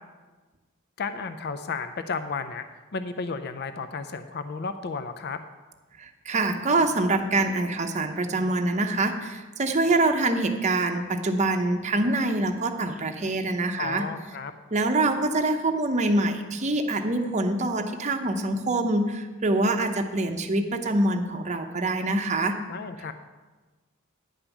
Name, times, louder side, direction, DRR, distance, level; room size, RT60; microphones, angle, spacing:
voice 1, 1.0-5.4 13.8-14.5 22.7-23.1, left 4 dB, 50° left, 10 dB, 0.5 m, -33 dB
voice 2, 6.0-14.0 14.7-22.6, right 2 dB, 35° right, 5 dB, 0.7 m, -25 dB
10.0 x 5.3 x 7.1 m, 1.3 s
head